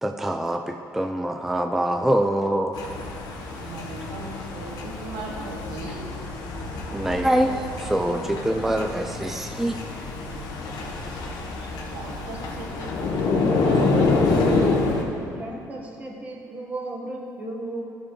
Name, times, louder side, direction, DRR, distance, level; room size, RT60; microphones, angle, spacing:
voice 1, 0.0-2.7 6.9-9.8, right 1 dB, 5° right, 4 dB, 0.3 m, -24 dB
sound 1, 2.7-15.0, left 3 dB, 65° left, 1.1 m, -27 dB
voice 2, 3.6-6.1 11.1-11.2 11.8-12.9 13.2-14.8, right 2 dB, 85° right, -2 dB, 1.7 m, -36 dB
voice 3, 15.3-17.8, right 2 dB, 20° right, -1 dB, 1.4 m, -35 dB
13.5 x 6.5 x 3.2 m, 2.6 s
cardioid pair, 115°, 7 cm